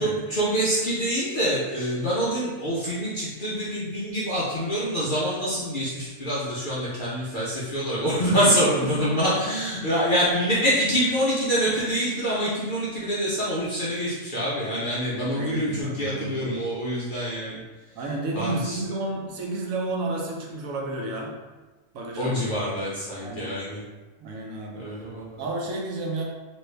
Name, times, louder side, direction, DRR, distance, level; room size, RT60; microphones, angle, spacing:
voice 1, 0.0-17.6 18.3-18.8 22.2-23.8 24.8-25.3, equal, 60° left, -8 dB, 0.5 m, -26 dB
voice 2, 8.0-8.5 8.8-9.5 15.3-16.6 17.9-21.4 21.9-22.6 23.2-23.5 24.2-24.9 25.4-26.2, right 2 dB, 65° right, -1 dB, 1.0 m, -31 dB
3.1 x 2.6 x 3.2 m, 1.3 s
omnidirectional pair, 1.6 m